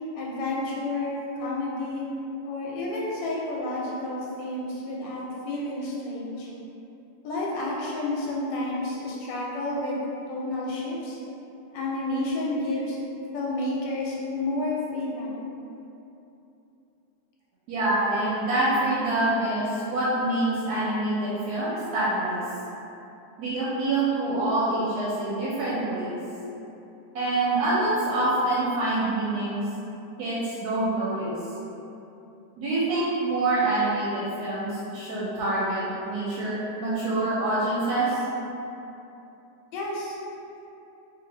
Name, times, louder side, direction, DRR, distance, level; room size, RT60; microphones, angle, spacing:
voice 1, 0.1-2.0 2.4-6.5 7.2-10.0 10.3-11.2 11.7-13.0 13.3-15.4 39.7-40.1, left 2 dB, 90° left, -4 dB, 1.3 m, -30 dB
voice 2, 17.7-22.4 23.4-26.1 27.1-29.6 30.2-31.3 32.6-38.2, right 2 dB, 70° right, -8 dB, 1.0 m, -26 dB
2.7 x 2.4 x 3.2 m, 2.9 s
omnidirectional pair, 1.9 m